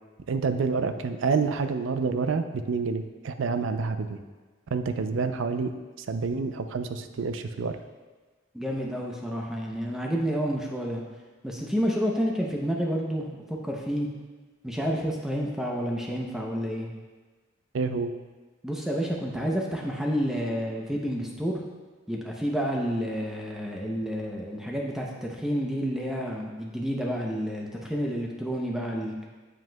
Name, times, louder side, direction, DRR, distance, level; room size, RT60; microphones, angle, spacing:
voice 1, 0.3-4.2 4.7-5.7 6.1-7.8 17.7-18.1, right 4 dB, 70° right, 9 dB, 0.4 m, -28 dB
voice 2, 8.5-11.0 11.4-14.1 14.6-16.9 18.6-21.6 22.1-29.1, equal, ahead, -1 dB, 0.6 m, -29 dB
7.6 x 7.5 x 2.2 m, 1.3 s
head